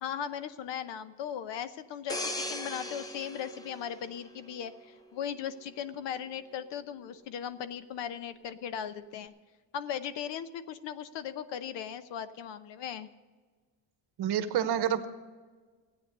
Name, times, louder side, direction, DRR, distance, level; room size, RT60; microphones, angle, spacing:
voice 1, 0.0-9.3 9.7-13.1, left 9 dB, 65° left, 13 dB, 0.9 m, -38 dB
sound 1, 2.1-4.8 5.2-5.5, left 1 dB, 10° left, 0.6 m, -38 dB
voice 2, 14.2-15.1, right 9 dB, 55° right, 10 dB, 1.1 m, -28 dB
15.0 x 9.3 x 6.6 m, 1.4 s
cardioid pair, 130°, 46 cm